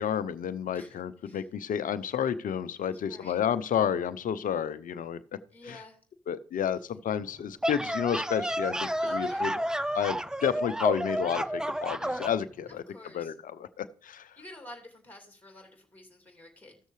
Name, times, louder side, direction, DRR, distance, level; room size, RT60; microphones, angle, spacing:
voice 1, 0.0-5.2 5.7-5.8 6.3-9.5 9.9-12.8 13.1-14.3, left 8 dB, 65° left, 14 dB, 0.7 m, -31 dB
voice 2, 0.7-1.5 2.9-3.4 5.5-6.0 8.5-8.6 8.9-9.5 12.7-13.3 14.4-16.8, left 1 dB, 10° left, 3 dB, 2.6 m, -50 dB
sound 1, 7.4-12.4, right 1 dB, 5° right, 0.5 m, -31 dB
15.5 x 6.5 x 3.2 m, 0.44 s
supercardioid pair, 50°, 15 cm